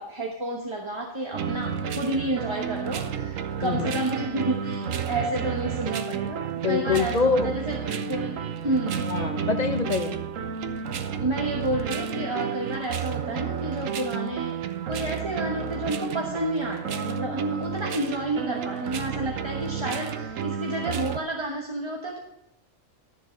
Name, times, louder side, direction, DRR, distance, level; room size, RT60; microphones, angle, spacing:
voice 1, 0.0-7.8 8.0-9.0 11.2-14.6 14.9-22.2, right 1 dB, 25° right, 0 dB, 1.1 m, -30 dB
sound 1, 1.3-21.2, right 7 dB, 80° right, 1.2 m, -31 dB
voice 2, 3.6-4.0 6.6-7.5 9.1-10.2, left 4 dB, 40° left, 8 dB, 0.7 m, -25 dB
12.5 x 7.4 x 5.1 m, 0.84 s
omnidirectional pair, 1.3 m